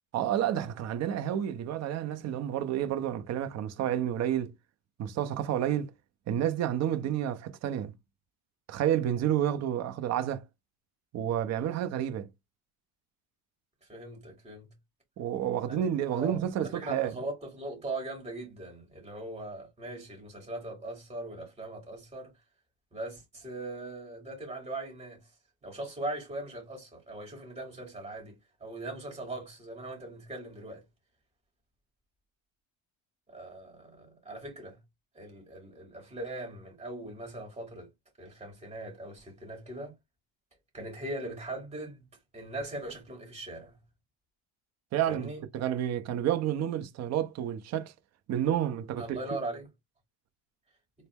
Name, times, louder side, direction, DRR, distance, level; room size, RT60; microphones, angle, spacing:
voice 1, 0.1-4.5 5.0-5.9 6.3-7.9 8.7-10.4 11.1-12.3 15.2-17.1 44.9-47.9 48.3-49.2, right 10 dB, 35° right, 0.6 m, -30 dB
voice 2, 13.9-14.7 15.6-22.3 22.9-25.3 25.6-30.8 33.3-34.8 35.1-37.9 38.2-39.9 40.7-42.0 42.3-43.8 45.1-45.4 49.0-49.7, right 2 dB, 15° right, 2.7 m, -40 dB
4.0 x 2.1 x 3.5 m
supercardioid pair, 115°, 44 cm